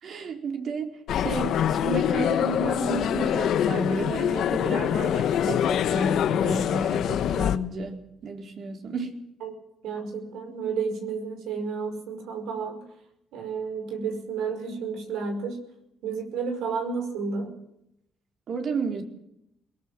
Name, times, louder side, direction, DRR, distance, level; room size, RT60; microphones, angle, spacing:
voice 1, 0.0-9.2 18.5-19.0, right 3 dB, 60° right, 4 dB, 4.2 m, -32 dB
sound 1, 1.1-7.6, left 10 dB, 75° left, 1.2 m, -25 dB
voice 2, 9.8-12.8 13.3-15.6 16.0-17.5, right 5 dB, 90° right, 6 dB, 5.3 m, -31 dB
21.5 x 20.0 x 7.6 m, 0.80 s
cardioid pair, 90°, 0 cm